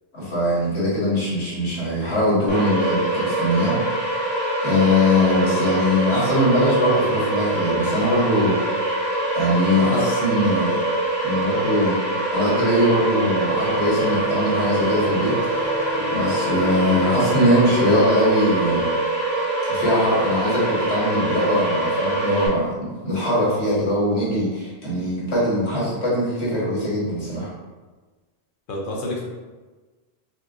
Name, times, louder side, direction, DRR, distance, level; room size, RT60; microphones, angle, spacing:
voice 1, 0.1-3.7 4.6-8.6 9.3-10.8 11.2-15.8 16.1-18.8 19.7-27.5, left 1 dB, 85° left, -8 dB, 1.5 m, -21 dB
sound 1, 2.5-22.5, right 2 dB, 30° right, 0.8 m, -24 dB
sound 2, 13.6-18.7, left 1 dB, 50° right, 1.5 m, -34 dB
voice 2, 28.7-29.3, left 1 dB, 60° left, -2 dB, 0.7 m, -29 dB
4.2 x 2.2 x 2.5 m, 1.3 s
omnidirectional pair, 1.1 m